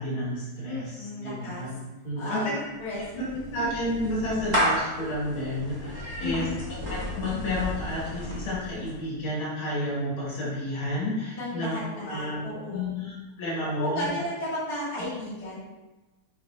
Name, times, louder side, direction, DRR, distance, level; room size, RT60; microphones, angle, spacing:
voice 1, 0.0-1.8 2.0-2.6 3.5-6.4 6.9-11.8 12.0-14.1, left 1 dB, 80° left, -8 dB, 3.1 m, -31 dB
voice 2, 0.7-1.7 2.2-2.5 2.8-3.0 3.3-3.7 6.2-6.5 11.3-12.9 13.8-15.6, left 1 dB, 50° left, -9 dB, 2.8 m, -34 dB
Clapping / Meow, 2.6-9.1, equal, 15° right, 1.0 m, -32 dB
7.4 x 5.5 x 2.9 m, 1.1 s
omnidirectional pair, 2.3 m